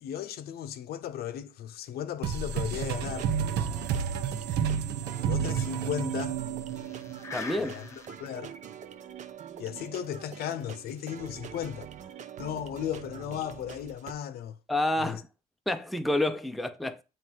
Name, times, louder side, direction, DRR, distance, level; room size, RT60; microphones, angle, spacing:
voice 1, 0.0-3.3 5.2-6.4 7.6-8.6 9.6-11.9 12.4-14.6 15.0-15.2, left 10 dB, 65° left, 0.7 m, -36 dB
sound 1, 2.2-7.5, right 7 dB, 80° right, 0.8 m, -30 dB
sound 2, 2.7-14.1, right 9 dB, 45° right, 0.7 m, -45 dB
sound 3, 4.7-4.8 5.1-5.2 5.6-5.7 6.6-8.3 8.8-8.9 9.8-10.0, left 3 dB, 20° left, 1.1 m, -43 dB
voice 2, 7.3-7.7 14.7-15.3 15.7-17.0, left 1 dB, ahead, 0.5 m, -29 dB
7.5 x 3.1 x 4.6 m
cardioid pair, 110°, 17 cm